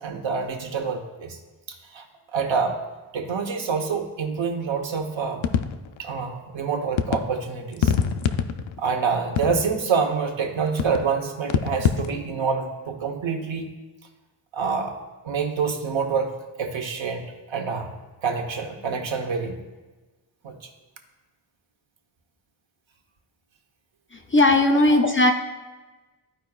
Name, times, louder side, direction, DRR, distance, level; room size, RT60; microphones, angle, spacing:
voice 1, 0.0-1.4 1.7-2.0 2.3-2.8 3.1-5.5 6.0-7.9 8.8-13.7 14.5-14.9 15.2-16.3 16.6-17.2 17.5-17.9 18.2-19.6 20.4-20.5, right 5 dB, 70° right, 3 dB, 1.0 m, -26 dB
sound 1, 5.4-6.0 7.0-7.3 7.7-8.8 9.4-9.9 10.8-11.1 11.5-12.2, left 7 dB, 75° left, 0.5 m, -24 dB
voice 2, 24.3-25.3, left 2 dB, 30° left, 3 dB, 0.4 m, -17 dB
14.0 x 4.8 x 2.3 m, 1.2 s
wide cardioid pair, 180°, 47 cm